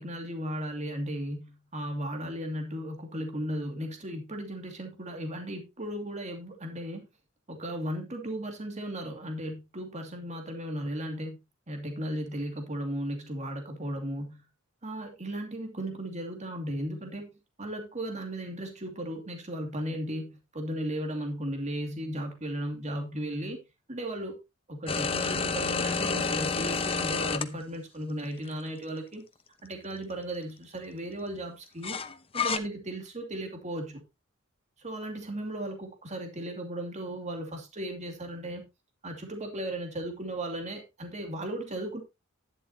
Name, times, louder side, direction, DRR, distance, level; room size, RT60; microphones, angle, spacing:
voice 1, 0.0-7.1 7.5-11.4 11.7-14.5 14.8-17.3 17.6-23.6 23.9-24.4 24.7-29.2 29.6-32.0 32.3-34.0 34.8-38.7 39.0-42.0, right 1 dB, 35° right, 2.5 m, -36 dB
sound 1, 24.9-27.4 28.5-28.6 31.8-32.6, left 5 dB, 25° left, 0.9 m, -29 dB
11.0 x 11.0 x 2.9 m
head